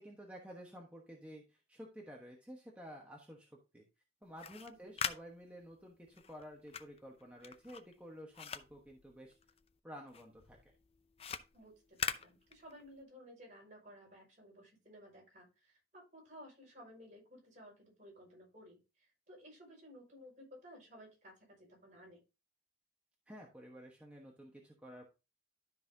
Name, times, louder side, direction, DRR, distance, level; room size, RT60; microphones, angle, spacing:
voice 1, 0.0-3.8 4.2-9.4 9.8-10.6 23.3-25.1, equal, 5° right, -1 dB, 1.2 m, -52 dB
sound 1, 4.2-9.8 10.1-13.0, left 7 dB, 35° left, 0.5 m, -43 dB
voice 2, 11.5-22.2, equal, 45° right, -2 dB, 5.6 m, -56 dB
12.5 x 5.7 x 2.8 m, 0.28 s
head